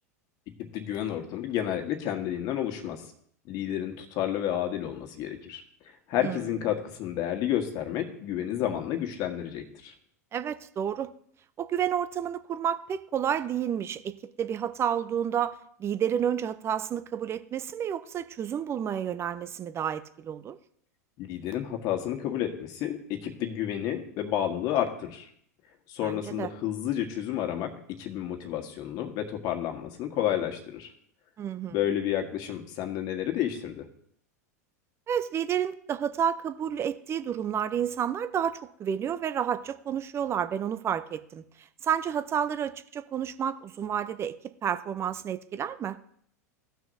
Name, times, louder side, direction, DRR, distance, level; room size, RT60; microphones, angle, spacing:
voice 1, 0.6-3.0 3.5-5.6 6.1-9.9 21.2-25.3 25.9-30.9 31.7-33.9, left 11 dB, 50° left, 5 dB, 1.5 m, -31 dB
voice 2, 10.3-11.1 11.6-20.6 26.0-26.5 31.4-31.8 35.1-41.4 41.8-44.4 44.6-46.0, right 9 dB, 30° right, 13 dB, 0.6 m, -30 dB
16.0 x 6.3 x 2.7 m, 0.63 s
hypercardioid pair, 90°, 9 cm